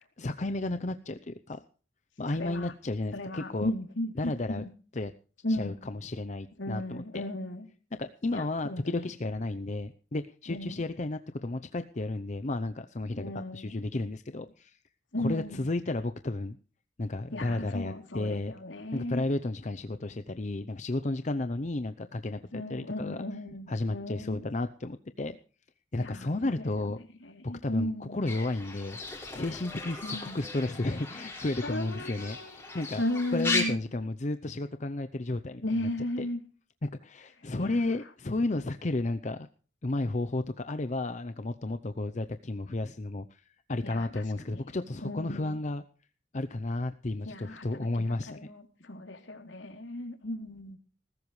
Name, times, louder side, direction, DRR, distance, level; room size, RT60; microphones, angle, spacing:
voice 1, 0.2-1.6 2.2-3.7 4.2-4.7 4.9-5.1 5.5-7.3 8.0-14.8 15.2-16.6 17.0-18.5 18.9-23.2 23.7-25.4 25.9-27.0 27.4-29.0 29.3-33.0 33.3-35.9 36.2-36.3 36.8-39.5 39.8-43.4 43.7-45.8 46.3-48.5, left 2 dB, 40° left, 10 dB, 0.7 m, -33 dB
voice 2, 2.3-2.7 3.1-4.7 5.4-5.8 6.6-7.7 8.3-9.1 10.5-10.8 13.2-13.7 15.1-15.6 17.3-19.2 22.5-24.5 26.0-26.6 27.2-28.2 30.0-30.4 31.6-33.9 35.6-36.4 37.6-37.7 43.8-44.2 44.5-44.6 45.0-45.6 47.2-50.8, left 1 dB, 85° left, 4 dB, 3.2 m, -35 dB
Fowl / Bird, 28.3-33.6, left 3 dB, 15° left, 4.8 m, -37 dB
19.0 x 15.5 x 3.2 m, 0.40 s
head